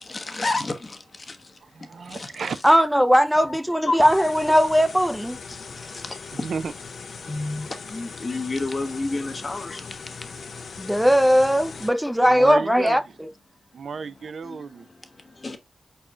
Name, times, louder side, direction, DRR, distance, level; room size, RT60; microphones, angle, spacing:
voice 1, 0.1-1.0 1.3-1.4 2.1-2.3 3.5-4.1 6.4-6.5 7.3-9.8 11.2-11.3 14.4-14.6 15.4-15.6, left 3 dB, 40° left, 0.9 m, -29 dB
voice 2, 1.6-2.6 6.3-6.7 12.2-13.0 13.7-14.9, right 5 dB, 70° right, 0.3 m, -32 dB
voice 3, 2.6-5.4 10.8-13.0, equal, 5° right, 0.5 m, -19 dB
sound 1, 4.0-11.9, left 5 dB, 70° left, 0.6 m, -39 dB
4.4 x 4.2 x 2.3 m
cardioid pair, 75°, 0 cm